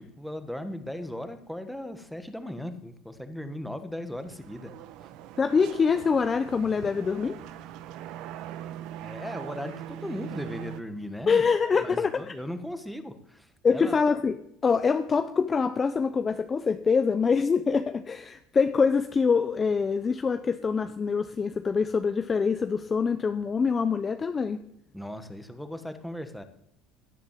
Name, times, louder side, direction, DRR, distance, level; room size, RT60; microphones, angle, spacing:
voice 1, 0.0-4.7 5.0-5.1 9.0-11.5 11.8-13.9 24.9-26.4, left 1 dB, ahead, 8 dB, 1.5 m, -37 dB
sound 1, 4.1-10.8, right 11 dB, 60° right, 1.1 m, -41 dB
voice 2, 5.4-7.3 11.3-12.2 13.6-14.4 14.6-24.6, left 5 dB, 20° left, 9 dB, 0.7 m, -25 dB
17.5 x 10.5 x 7.5 m, 0.72 s
cardioid pair, 160°, 0 cm